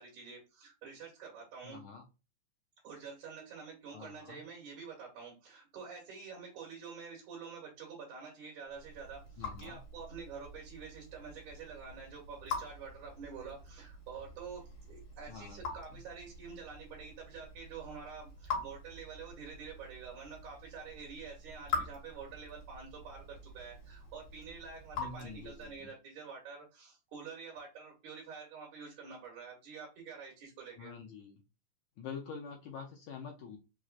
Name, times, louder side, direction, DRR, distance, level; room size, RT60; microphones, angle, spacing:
voice 1, 0.0-1.8 2.8-30.9, right 5 dB, 65° right, -3 dB, 2.5 m, -48 dB
voice 2, 1.6-2.0 3.9-4.4 9.4-9.8 15.3-15.6 15.9-16.0 25.0-25.9 30.8-31.3 32.0-33.6, left 5 dB, 85° left, 0 dB, 1.6 m, -46 dB
Raindrop / Drip, 8.7-25.9, left 4 dB, 65° left, 2.8 m, -45 dB
5.9 x 2.1 x 2.4 m, 0.29 s
omnidirectional pair, 3.8 m